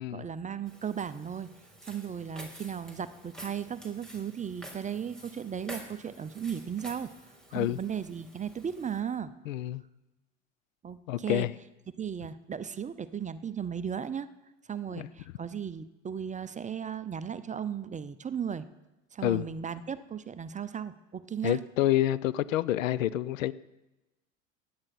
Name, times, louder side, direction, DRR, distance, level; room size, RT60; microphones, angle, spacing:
voice 1, 0.1-1.5 1.9-7.1 7.5-9.3 10.8-11.5 12.0-14.3 14.7-18.7 19.1-21.6, right 8 dB, 20° right, 0.6 m, -36 dB
Walk footsteps, 0.7-9.0, right 1 dB, ahead, 3.2 m, -49 dB
voice 2, 9.5-9.8 11.1-11.5 14.9-15.1 19.2-19.4 21.4-23.5, left 13 dB, 75° left, 0.6 m, -28 dB
16.0 x 10.5 x 4.2 m
hypercardioid pair, 75°, 39 cm